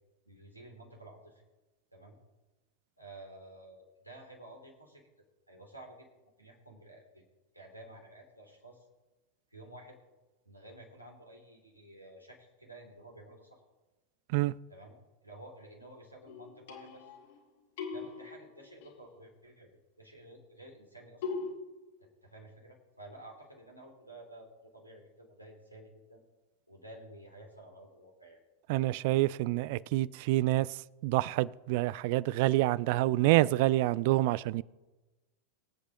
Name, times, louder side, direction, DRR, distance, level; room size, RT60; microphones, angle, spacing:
voice 1, 0.2-1.4 1.9-2.2 3.0-5.1 5.5-6.1 6.4-7.3 7.5-8.8 9.5-10.0 10.4-13.6 14.7-14.9 15.2-17.1 17.9-21.2 22.0-26.2 26.7-28.4, right 1 dB, 90° right, 3.0 m, -52 dB
sound 1, 16.3-17.4 17.8-19.0 21.2-21.5, left 5 dB, 55° left, 1.9 m, -40 dB
voice 2, 28.7-30.7 31.0-34.6, right 17 dB, 50° right, 0.3 m, -27 dB
24.0 x 8.1 x 3.1 m
figure-of-eight pair, 90°, 0 cm